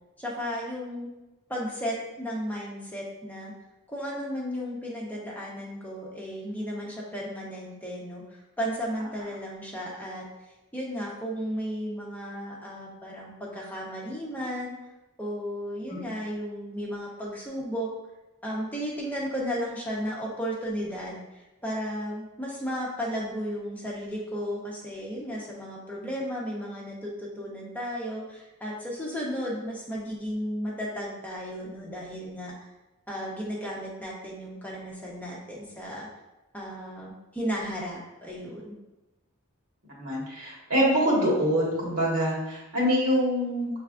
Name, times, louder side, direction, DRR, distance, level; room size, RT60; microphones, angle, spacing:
voice 1, 0.2-1.1 1.5-3.5 3.9-10.3 10.7-14.7 15.2-17.9 18.4-32.5 33.1-36.1 36.5-38.7, equal, 10° left, -4 dB, 0.7 m, -34 dB
voice 2, 40.0-43.7, equal, 90° right, -4 dB, 1.6 m, -25 dB
6.2 x 3.3 x 2.4 m, 1.0 s
head